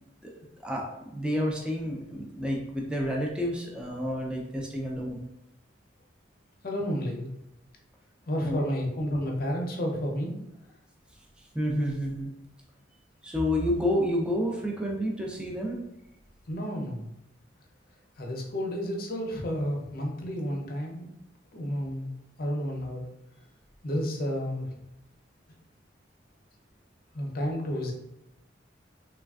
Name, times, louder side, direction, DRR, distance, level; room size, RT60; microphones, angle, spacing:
voice 1, 0.6-5.3 8.4-8.6 11.4-12.3 13.2-15.8, equal, 5° right, -1 dB, 0.4 m, -30 dB
voice 2, 6.6-7.3 8.3-10.3 16.5-17.1 18.2-21.1 21.5-22.1 22.4-23.1 23.8-24.7 27.1-27.9, equal, 50° left, 0 dB, 0.6 m, -31 dB
3.2 x 2.4 x 2.3 m, 0.85 s
head